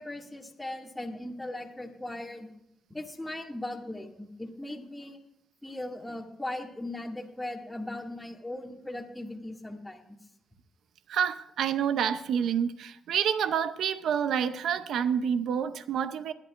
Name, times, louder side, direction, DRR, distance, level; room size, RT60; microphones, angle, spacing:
voice 1, 0.0-2.5 2.9-5.2 5.6-10.2, left 1 dB, 5° left, 2.2 m, -38 dB
voice 2, 11.1-16.3, right 8 dB, 85° right, 0.6 m, -28 dB
22.5 x 11.5 x 2.5 m
cardioid pair, 90°, 0 cm